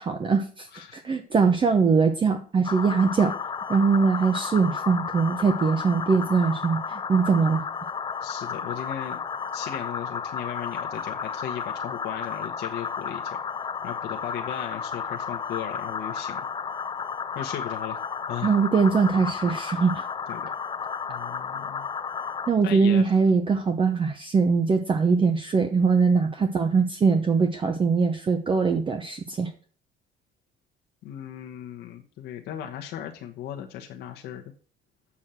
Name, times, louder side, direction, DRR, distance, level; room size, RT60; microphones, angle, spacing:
voice 1, 0.0-3.3 3.7-7.6 18.4-20.1 22.5-29.5, right 5 dB, 30° right, 6 dB, 0.9 m, -22 dB
sound 1, 2.6-22.5, left 6 dB, 25° left, 0.6 m, -33 dB
voice 2, 8.2-9.2 9.5-13.4 13.8-16.4 17.3-18.0 18.3-18.5 20.3-20.4 21.1-21.9 22.6-23.2 31.0-34.4, left 10 dB, 80° left, 2 dB, 1.1 m, -36 dB
7.2 x 6.3 x 7.6 m, 0.44 s
cardioid pair, 110°, 17 cm